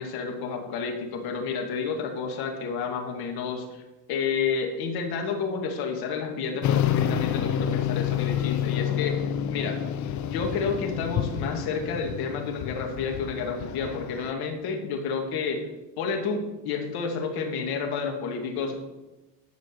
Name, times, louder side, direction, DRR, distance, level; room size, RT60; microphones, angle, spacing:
voice 1, 0.0-3.7 4.1-9.2 9.5-9.8 10.2-15.6 16.0-18.8, left 5 dB, 70° left, 3 dB, 2.2 m, -30 dB
sound 1, 6.6-14.3, left 10 dB, 50° left, 0.7 m, -28 dB
10.5 x 5.2 x 6.8 m, 1.1 s
cardioid pair, 110°, 38 cm